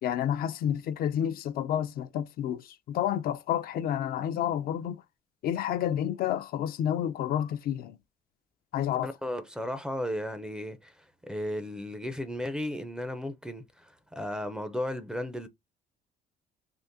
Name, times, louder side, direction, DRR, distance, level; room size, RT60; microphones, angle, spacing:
voice 1, 0.0-5.0 5.4-8.0 8.7-9.1, left 10 dB, 60° left, 0.4 m, -30 dB
voice 2, 8.9-15.5, left 1 dB, 5° right, 0.5 m, -35 dB
3.6 x 2.4 x 2.6 m
cardioid pair, 110°, 17 cm